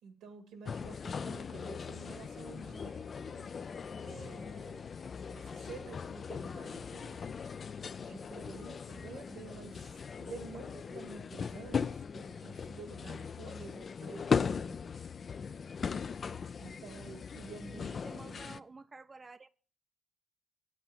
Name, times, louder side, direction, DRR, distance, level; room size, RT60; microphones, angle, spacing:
voice 1, 0.0-3.5 4.0-4.9 5.3-7.4 8.0-9.9 10.2-14.8 16.6-18.6, right 5 dB, 90° right, 2.1 m, -50 dB
sound 1, 0.7-18.6, left 6 dB, 50° left, 0.4 m, -39 dB
voice 2, 17.7-19.5, right 3 dB, 30° right, 0.4 m, -51 dB
8.5 x 8.1 x 7.2 m
cardioid pair, 75°, 0 cm